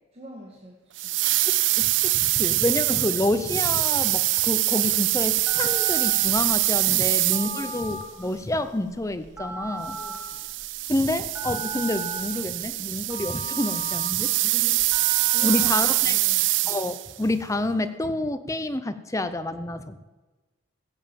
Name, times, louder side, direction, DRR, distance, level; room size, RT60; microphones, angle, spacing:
voice 1, 0.1-0.8 1.0-1.1 6.9-7.1 7.5-7.8 9.9-10.4 14.4-16.5, equal, 30° right, -1 dB, 1.6 m, -43 dB
sound 1, 1.0-8.0 9.9-17.1, right 18 dB, 65° right, 0.4 m, -24 dB
voice 2, 1.5-10.0 10.9-14.3 15.4-16.2 16.7-20.0, left 1 dB, 15° left, 10 dB, 0.6 m, -28 dB
Telephone, 4.9-16.3, right 2 dB, 10° right, 1.9 m, -38 dB
16.0 x 7.3 x 7.5 m, 1.2 s
head